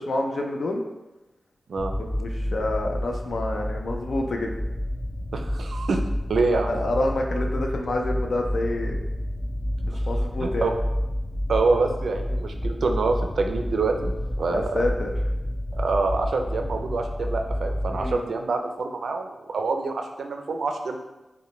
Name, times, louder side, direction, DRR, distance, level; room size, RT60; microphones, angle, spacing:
voice 1, 0.1-0.8 2.1-4.5 6.5-9.0 9.8-10.7 14.5-15.1 17.9-18.3, left 2 dB, 75° left, 2 dB, 0.4 m, -28 dB
sound 1, 1.8-18.1, equal, 20° left, 0.5 m, -29 dB
voice 2, 5.3-6.0 6.3-6.7 9.9-10.1 10.4-10.7 11.5-14.8 15.7-21.0, right 3 dB, 80° right, 5 dB, 0.4 m, -26 dB
5.6 x 2.1 x 3.1 m, 1.0 s
cardioid pair, 55°, 0 cm